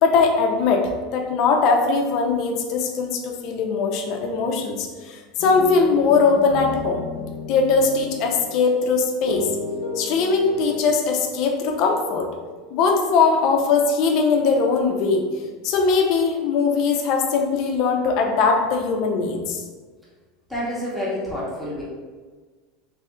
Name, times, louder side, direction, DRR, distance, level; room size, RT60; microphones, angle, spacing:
voice 1, 0.0-7.0 7.5-9.5 10.0-12.3 12.7-15.3 15.6-19.6, left 4 dB, 45° left, 2 dB, 0.5 m, -20 dB
sound 1, 5.4-8.8 9.2-10.8, left 3 dB, 90° left, 0.6 m, -33 dB
voice 2, 20.5-21.8, equal, ahead, -8 dB, 0.8 m, -28 dB
3.3 x 2.4 x 4.3 m, 1.4 s
supercardioid pair, 170°, 0 cm